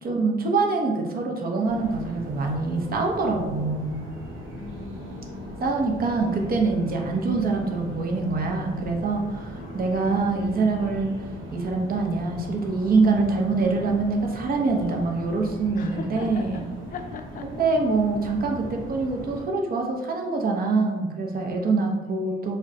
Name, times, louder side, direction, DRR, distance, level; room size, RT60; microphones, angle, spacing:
voice 1, 0.0-4.0 5.6-11.1 11.5-16.7 17.4-22.6, right 3 dB, 50° right, 1 dB, 0.6 m, -25 dB
sound 1, 1.6-19.5, equal, 80° right, 0.8 m, -39 dB
voice 2, 4.6-5.6 9.6-10.3 15.7-16.6 16.9-17.7, left 5 dB, 45° left, 6 dB, 0.4 m, -40 dB
2.4 x 2.2 x 3.7 m, 1.2 s
cardioid pair, 90°, 20 cm